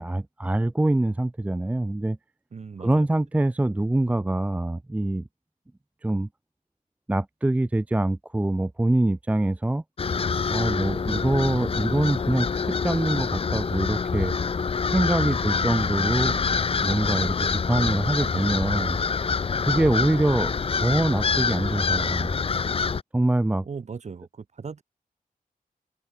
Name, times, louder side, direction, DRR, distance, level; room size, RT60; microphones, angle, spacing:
voice 1, 0.0-2.2 2.8-5.2 6.0-6.3 7.1-9.8 10.5-14.3 14.9-16.3 16.8-19.0 19.6-22.3 23.1-23.7, right 1 dB, 10° right, 0.4 m, -24 dB
voice 2, 2.5-3.1 15.3-15.9 16.1-16.9 23.6-24.8, right 5 dB, 50° right, 3.3 m, -39 dB
sound 1, 10.0-23.0, left 5 dB, 40° left, 0.8 m, -26 dB
wide cardioid pair, 125°, 15 cm